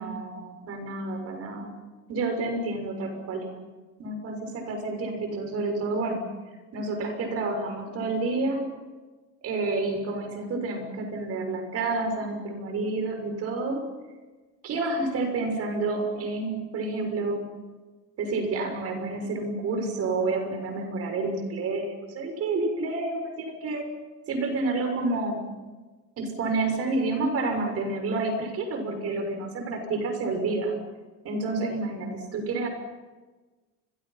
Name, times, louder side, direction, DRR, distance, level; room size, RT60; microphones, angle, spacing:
voice 1, 0.0-1.7 2.1-3.5 4.0-6.3 6.7-8.7 9.4-13.9 14.6-17.5 18.2-23.8 24.3-25.5 26.2-30.8 31.2-32.7, right 3 dB, 50° right, 5 dB, 6.6 m, -29 dB
29.5 x 24.0 x 6.0 m, 1.3 s
cardioid pair, 140°, 31 cm